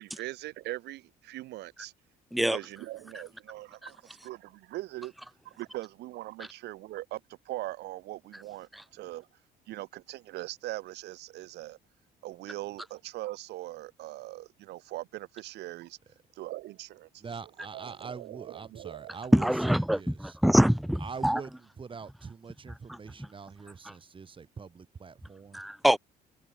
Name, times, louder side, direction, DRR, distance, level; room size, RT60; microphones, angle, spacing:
voice 1, 0.0-1.9 2.5-5.1 5.4-7.2 7.5-9.3 9.7-11.8 12.2-16.0 16.4-17.2 17.7-19.2, right 17 dB, 80° right, 5.3 m, -41 dB
voice 2, 17.2-20.4 21.0-25.6, right 5 dB, 30° right, 5.4 m, -44 dB
voice 3, 19.3-21.4 25.5-26.0, equal, ahead, 0.4 m, -24 dB
cardioid pair, 110°, 17 cm